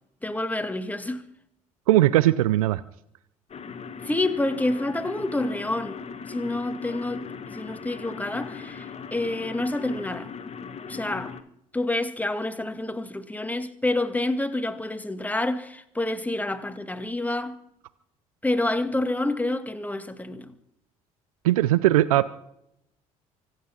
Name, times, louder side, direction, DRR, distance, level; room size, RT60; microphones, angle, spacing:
voice 1, 0.2-1.2 4.0-6.0 6.3-10.3 10.9-11.4 11.7-17.6 18.4-20.5, left 2 dB, 10° left, 2.1 m, -28 dB
voice 2, 1.9-2.8 21.4-22.3, right 15 dB, 80° right, 0.6 m, -19 dB
sound 1, 3.5-11.4, left 6 dB, 35° left, 1.6 m, -39 dB
24.5 x 9.4 x 5.9 m
hypercardioid pair, 55°, 18 cm